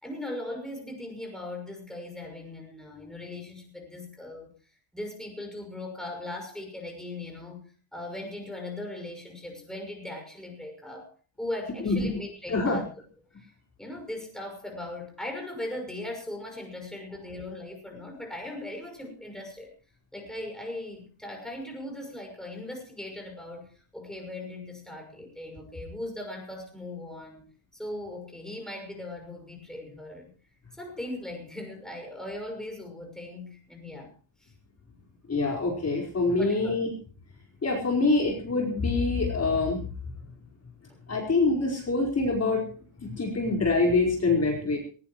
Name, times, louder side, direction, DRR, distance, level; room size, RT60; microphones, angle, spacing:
voice 1, 0.0-4.5 4.9-7.6 7.9-11.1 11.4-12.9 13.4-13.5 13.8-19.7 20.1-27.5 27.7-30.3 30.8-34.1 34.4-34.5 36.4-36.8, left 1 dB, ahead, 2 dB, 6.2 m, -39 dB
voice 2, 12.5-12.8 35.3-36.9 37.6-39.8 41.1-42.6 43.0-44.8, left 3 dB, 30° left, 0 dB, 4.8 m, -25 dB
19.5 x 19.5 x 3.2 m, 0.38 s
cardioid pair, 135°, 50 cm